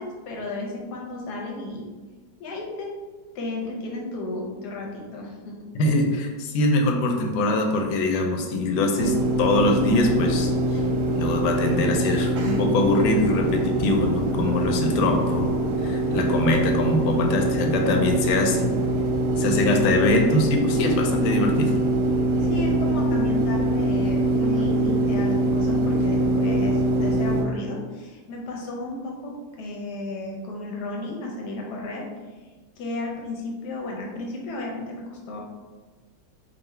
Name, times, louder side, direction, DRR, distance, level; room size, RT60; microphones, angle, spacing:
voice 1, 0.0-1.9 2.4-3.0 3.3-5.6 22.4-32.0 32.8-35.4, left 2 dB, 65° left, -1 dB, 1.1 m, -33 dB
voice 2, 5.7-10.8 11.2-15.5 15.8-18.7 19.4-21.7, left 2 dB, 80° left, 2 dB, 1.3 m, -23 dB
sound 1, 9.0-27.4, right 1 dB, 85° right, 1.5 m, -23 dB
3.8 x 2.4 x 4.2 m, 1.4 s
omnidirectional pair, 2.2 m